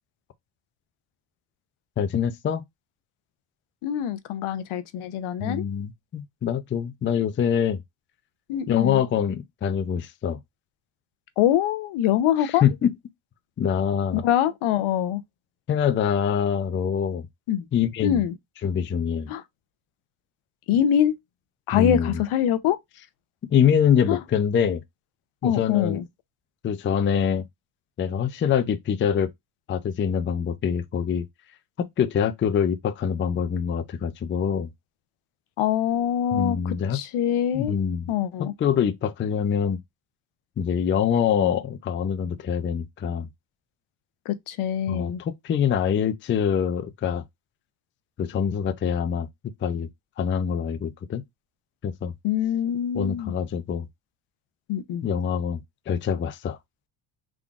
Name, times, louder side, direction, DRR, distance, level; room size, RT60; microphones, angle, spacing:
voice 1, 2.0-2.6 5.4-7.8 8.7-10.4 12.6-12.9 13.6-14.2 15.7-17.3 17.7-18.2 18.6-19.3 21.7-22.1 23.5-24.8 25.4-26.0 26.6-27.4 28.0-29.3 29.7-31.3 31.8-34.7 36.3-37.0 37.5-38.0 38.4-39.8 40.6-43.3 44.9-47.2 48.2-49.3 49.6-49.9 50.2-51.2 51.8-52.1 52.9-53.9 55.0-56.6, left 8 dB, 25° left, 0.4 m, -24 dB
voice 2, 3.8-5.6 8.5-9.0 11.4-12.6 14.1-15.2 17.5-17.7 18.0-18.4 19.3-19.4 20.7-21.2 21.7-22.8 24.1-24.2 25.4-26.1 35.6-37.8 38.1-38.5 44.2-45.2 52.2-53.4 54.7-55.1, left 10 dB, 75° left, 0.8 m, -24 dB
3.7 x 3.7 x 2.3 m
cardioid pair, 110°, 50 cm